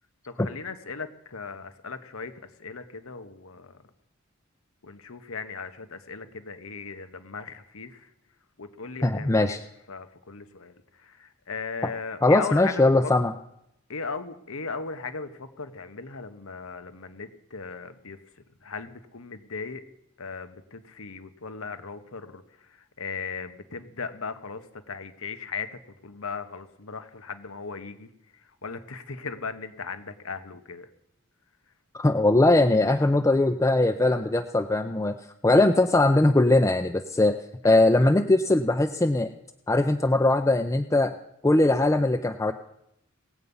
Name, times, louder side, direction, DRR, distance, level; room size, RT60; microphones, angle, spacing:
voice 1, 0.3-2.3 2.6-3.8 4.8-8.1 8.6-9.6 9.9-10.7 11.0-13.1 13.9-18.2 18.6-19.8 20.2-22.4 23.0-25.7 26.0-28.1 28.6-30.9 37.6-37.8, left 5 dB, 85° left, 10 dB, 1.1 m, -37 dB
voice 2, 9.0-9.6 12.2-13.3 31.9-35.2 35.4-37.4 37.6-39.3 39.7-41.1 41.4-42.5, left 2 dB, 15° left, 6 dB, 0.4 m, -20 dB
18.5 x 8.2 x 5.5 m, 0.80 s
head